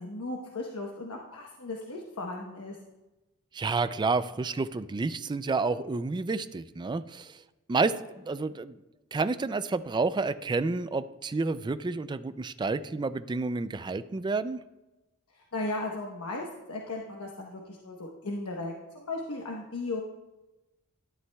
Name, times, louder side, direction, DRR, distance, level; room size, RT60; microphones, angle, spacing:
voice 1, 0.0-2.8 15.3-20.0, left 2 dB, 80° left, -1 dB, 1.1 m, -36 dB
voice 2, 3.5-7.4 7.7-8.8 9.1-14.6, right 3 dB, 20° right, 13 dB, 0.3 m, -30 dB
12.5 x 11.0 x 2.3 m, 1.0 s
head